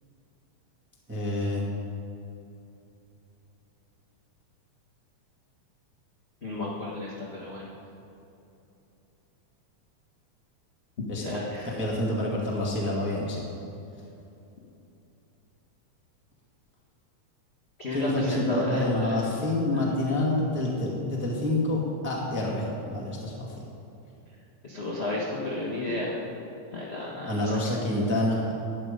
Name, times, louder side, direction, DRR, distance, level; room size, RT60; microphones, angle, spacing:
voice 1, 1.1-1.6 11.1-11.2 11.6-13.4 17.9-23.3 27.2-28.6, left 1 dB, 5° right, -3 dB, 1.0 m, -27 dB
voice 2, 6.4-7.7 11.1-11.8 17.8-19.8 24.6-26.2 26.7-27.6 27.9-28.0, left 2 dB, 40° left, -5 dB, 0.9 m, -33 dB
12.0 x 9.3 x 5.1 m, 2.9 s
omnidirectional pair, 3.4 m